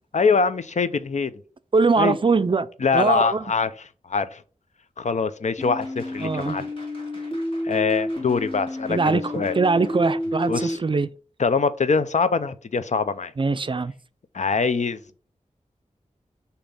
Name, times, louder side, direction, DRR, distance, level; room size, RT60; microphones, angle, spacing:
voice 1, 0.1-1.3 2.0-2.2 2.8-4.4 5.0-6.7 7.6-9.5 10.5-10.8 11.4-13.3 14.3-15.2, left 5 dB, 65° left, 0.5 m, -23 dB
voice 2, 1.7-3.4 6.2-6.6 8.9-11.1 13.4-13.9, right 4 dB, 40° right, 0.4 m, -22 dB
sound 1, 5.6-10.8, left 1 dB, 40° left, 2.5 m, -30 dB
6.9 x 2.9 x 5.4 m
wide cardioid pair, 85°, 13 cm